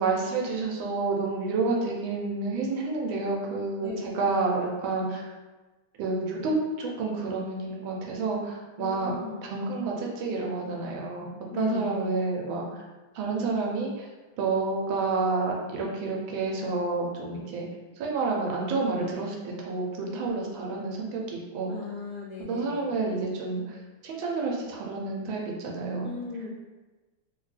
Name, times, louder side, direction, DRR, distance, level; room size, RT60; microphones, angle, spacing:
voice 1, 0.0-5.2 6.0-9.1 9.4-12.8 13.1-14.1 14.4-17.7 18.0-21.7 22.5-23.8 24.0-26.1, right 3 dB, 80° right, -1 dB, 1.4 m, -29 dB
voice 2, 8.8-9.4 11.5-12.1 20.0-20.4 21.7-22.9 26.0-26.5, left 4 dB, 65° left, -7 dB, 0.9 m, -38 dB
3.0 x 2.8 x 3.1 m, 1.2 s
omnidirectional pair, 2.2 m